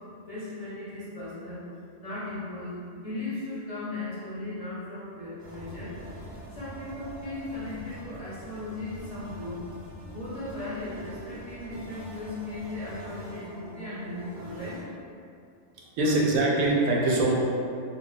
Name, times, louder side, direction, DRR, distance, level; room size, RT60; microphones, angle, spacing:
voice 1, 0.1-1.6 2.0-6.0 6.5-9.7 10.1-14.8 16.0-16.2, left 2 dB, 35° left, -11 dB, 0.7 m, -37 dB
sound 1, 5.4-14.8, equal, 60° right, 0.8 m, -45 dB
voice 2, 15.7-17.3, right 2 dB, 85° right, -3 dB, 1.0 m, -23 dB
2.3 x 2.2 x 3.8 m, 2.5 s
omnidirectional pair, 1.4 m